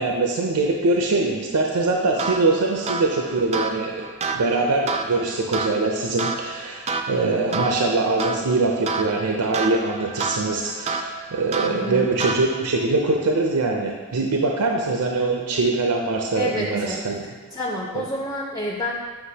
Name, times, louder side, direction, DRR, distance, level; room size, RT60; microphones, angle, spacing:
voice 1, 0.0-17.3 18.0-18.1, right 3 dB, 85° right, 1 dB, 0.6 m, -23 dB
sound 1, 2.2-12.8, right 4 dB, 30° right, 0.4 m, -30 dB
voice 2, 11.6-12.1 16.3-17.0 17.5-19.0, left 1 dB, 15° left, -4 dB, 0.6 m, -28 dB
7.9 x 5.8 x 2.8 m, 1.4 s
head